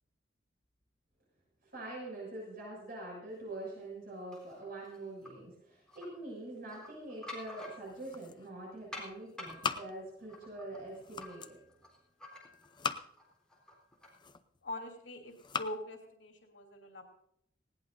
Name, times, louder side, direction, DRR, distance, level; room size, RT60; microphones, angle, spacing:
voice 1, 1.6-11.6, right 1 dB, 55° right, -3 dB, 6.9 m, -44 dB
sound 1, 4.3-5.3 5.9-6.1 6.6-8.2 8.9-12.8 13.2-14.2, left 1 dB, 5° left, 3.9 m, -49 dB
sound 2, 7.7-8.7 9.0-10.4 10.8-11.6 12.5-13.4 13.9-14.7 15.2-15.8, left 5 dB, 25° left, 0.7 m, -41 dB
voice 2, 14.6-17.0, left 1 dB, 90° left, 1 dB, 2.8 m, -43 dB
19.5 x 17.5 x 2.7 m, 0.70 s
head